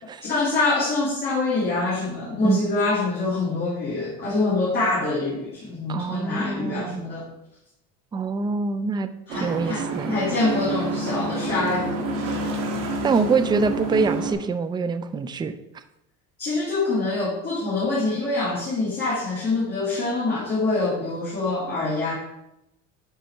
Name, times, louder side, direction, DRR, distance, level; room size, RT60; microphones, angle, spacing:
voice 1, 0.2-7.3 9.3-9.8 10.1-12.4 16.4-22.1, left 3 dB, 30° left, -7 dB, 2.3 m, -25 dB
voice 2, 5.9-7.0 8.1-10.2 13.0-15.5, right 4 dB, 15° right, 10 dB, 0.4 m, -25 dB
sound 1, 9.3-14.3, right 2 dB, 80° right, 2.0 m, -28 dB
10.5 x 4.0 x 4.5 m, 0.85 s
cardioid pair, 150°, 31 cm